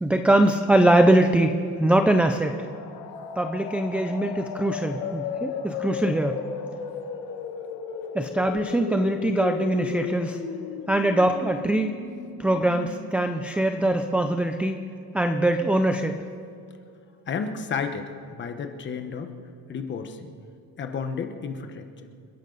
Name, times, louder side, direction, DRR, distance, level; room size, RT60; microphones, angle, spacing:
voice 1, 0.0-2.6 3.4-6.4 8.1-10.4 10.9-12.0 12.4-14.8 15.1-16.2, right 1 dB, 5° right, 6 dB, 0.3 m, -22 dB
sound 1, 2.4-14.0, left 7 dB, 80° left, 1.6 m, -35 dB
voice 2, 17.3-19.3 19.7-20.3 20.8-22.1, left 5 dB, 30° left, 7 dB, 1.1 m, -32 dB
29.0 x 11.0 x 4.0 m, 2.4 s
cardioid pair, 170°, 37 cm